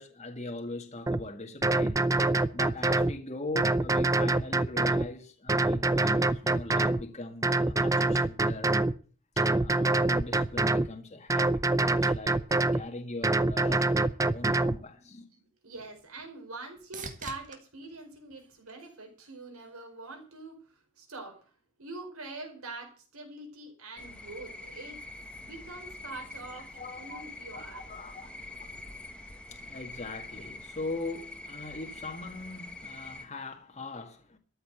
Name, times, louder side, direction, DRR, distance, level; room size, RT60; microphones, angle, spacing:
voice 1, 0.0-8.7 9.4-12.4 12.7-15.3 26.5-27.0 27.5-34.4, left 2 dB, 30° left, 1.8 m, -41 dB
sound 1, 1.1-1.2 1.6-3.1 3.5-5.1 5.5-7.0 7.4-8.9 9.4-10.9 11.3-12.8 13.2-14.8, right 2 dB, 15° right, 0.6 m, -25 dB
sound 2, 15.2-19.4 19.9-20.5 28.4-28.5, right 4 dB, 35° right, 1.9 m, -49 dB
voice 2, 15.3-21.5 21.8-25.0 25.4-27.8 28.2-28.3, right 2 dB, 80° right, 4.8 m, -44 dB
sound 3, 24.0-33.3, left 2 dB, 5° left, 1.7 m, -45 dB
13.5 x 7.9 x 7.8 m
head